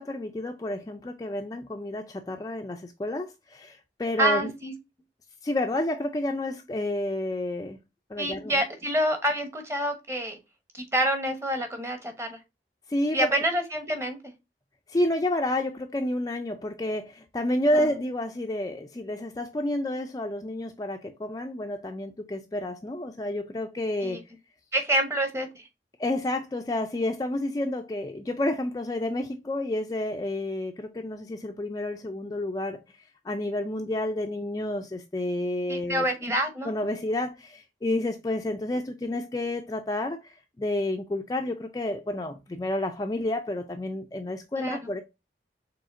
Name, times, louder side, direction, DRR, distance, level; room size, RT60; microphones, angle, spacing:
voice 1, 0.0-4.5 5.4-7.8 8.1-8.5 12.9-13.3 14.9-24.2 26.0-32.8 33.2-36.0 36.7-45.0, left 1 dB, 20° left, 0.3 m, -30 dB
voice 2, 4.2-4.7 8.2-10.4 10.7-12.4 13.1-14.2 17.7-17.9 24.0-24.2 24.7-25.6 35.7-36.7 44.6-44.8, right 1 dB, 15° right, 0.9 m, -27 dB
4.8 x 3.6 x 2.5 m
head